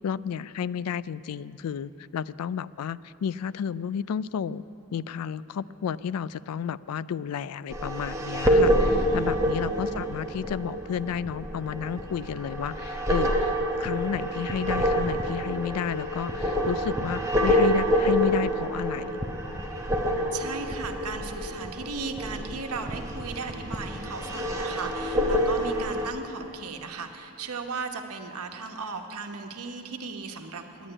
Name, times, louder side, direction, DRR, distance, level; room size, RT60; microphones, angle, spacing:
voice 1, 0.0-4.6 4.9-19.2, left 7 dB, 85° left, 18 dB, 0.3 m, -32 dB
sound 1, 7.7-26.1, equal, 15° right, 0.9 m, -27 dB
voice 2, 8.8-9.4 20.3-30.9, right 4 dB, 90° right, 4 dB, 1.1 m, -36 dB
11.0 x 10.5 x 9.8 m, 2.9 s
head